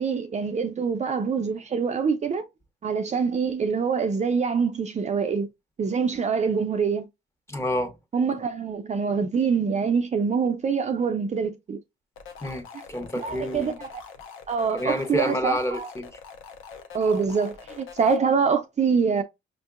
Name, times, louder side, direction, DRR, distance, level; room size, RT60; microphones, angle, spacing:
voice 1, 0.0-2.4 2.8-5.5 5.8-7.1 8.1-11.8 13.2-14.0 14.5-15.9 16.9-19.2, right 5 dB, 35° right, 0.5 m, -25 dB
voice 2, 7.5-7.9 12.4-13.8 14.7-16.1, equal, 15° left, 1.2 m, -28 dB
sound 1, 12.2-18.2, left 6 dB, 85° left, 0.9 m, -44 dB
5.8 x 2.7 x 2.4 m
cardioid pair, 90°, 20 cm